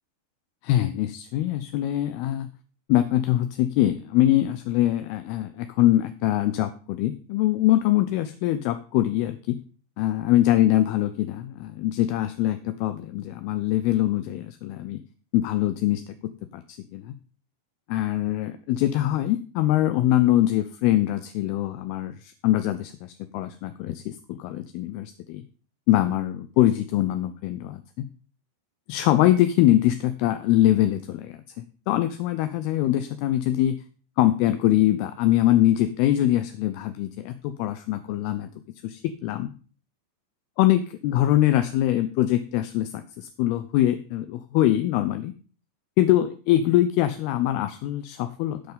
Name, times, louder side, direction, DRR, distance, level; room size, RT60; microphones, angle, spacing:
voice 1, 0.6-2.5 2.9-9.6 10.0-15.0 15.3-16.0 16.5-17.1 17.9-25.4 25.9-28.1 28.9-33.8 34.2-38.5 38.8-39.5 40.6-45.3 46.0-48.6, left 13 dB, 80° left, 9 dB, 2.6 m, -23 dB
15.5 x 5.5 x 3.9 m, 0.39 s
omnidirectional pair, 4.6 m